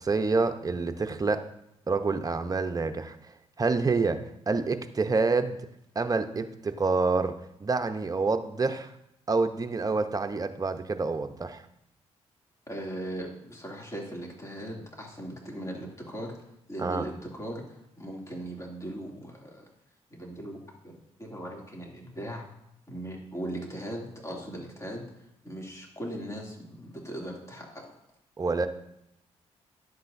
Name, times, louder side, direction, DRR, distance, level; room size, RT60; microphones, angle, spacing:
voice 1, 0.0-1.5 1.9-3.2 3.6-5.6 5.9-8.9 9.3-11.6 16.8-17.1 28.4-28.7, right 4 dB, 30° right, 7 dB, 0.8 m, -27 dB
voice 2, 12.7-16.3 16.7-19.7 20.1-20.9 21.2-22.5 22.9-25.0 25.4-27.8, right 1 dB, 25° left, -2 dB, 2.6 m, -39 dB
11.0 x 7.9 x 2.6 m, 0.80 s
cardioid pair, 65°, 12 cm